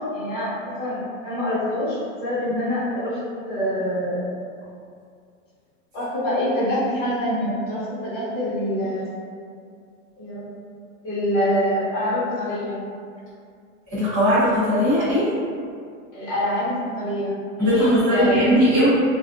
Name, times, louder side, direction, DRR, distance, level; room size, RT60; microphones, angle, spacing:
voice 1, 0.0-3.2 3.5-4.3 5.9-9.1 10.2-10.5 11.0-12.9 16.1-18.5, left 1 dB, 25° left, -13 dB, 0.9 m, -25 dB
voice 2, 13.9-15.3 17.6-18.9, equal, 10° right, -16 dB, 0.4 m, -19 dB
2.5 x 2.3 x 2.3 m, 2.2 s
supercardioid pair, 170°, 39 cm